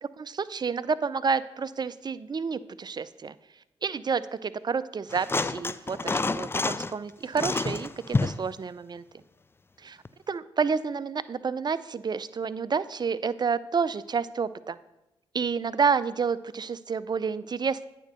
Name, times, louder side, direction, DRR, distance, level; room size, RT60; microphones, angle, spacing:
voice 1, 0.0-3.3 3.8-9.0 9.8-10.0 10.3-14.8 15.3-17.9, right 5 dB, 35° right, 15 dB, 0.5 m, -29 dB
sound 1, 5.1-6.9 7.3-8.5 10.0-10.1, left 3 dB, 20° left, 0.4 m, -28 dB
8.8 x 4.5 x 6.6 m, 0.94 s
hypercardioid pair, 40°, 12 cm